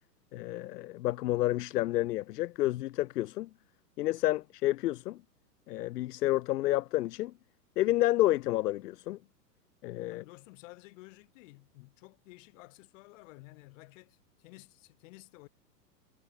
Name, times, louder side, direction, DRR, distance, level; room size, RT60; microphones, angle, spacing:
voice 1, 0.3-3.5 4.0-5.2 5.7-7.3 7.8-9.2 9.8-10.2, left 16 dB, 75° left, 0.6 m, -30 dB
voice 2, 10.1-15.5, left 23 dB, 50° left, 5.7 m, -53 dB
hypercardioid pair, 120°, 49 cm